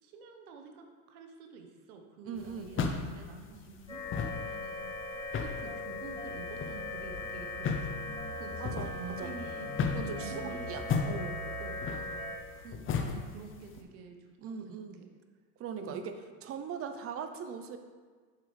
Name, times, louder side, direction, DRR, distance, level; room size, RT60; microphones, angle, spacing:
voice 1, 0.0-4.9 5.4-10.8 11.6-12.2 12.5-15.1 15.8-16.0, right 4 dB, 85° right, 4 dB, 1.2 m, -48 dB
voice 2, 2.2-2.9 8.6-8.9 9.2-9.3 9.9-11.5 14.4-15.0 15.6-16.1 16.4-17.8, right 6 dB, 30° right, 8 dB, 0.7 m, -40 dB
sound 1, 2.4-13.8, left 5 dB, 30° left, 0.7 m, -37 dB
sound 2, 3.9-12.3, left 2 dB, 10° left, 2.1 m, -40 dB
8.3 x 7.0 x 3.3 m, 1.5 s
supercardioid pair, 120°, 43 cm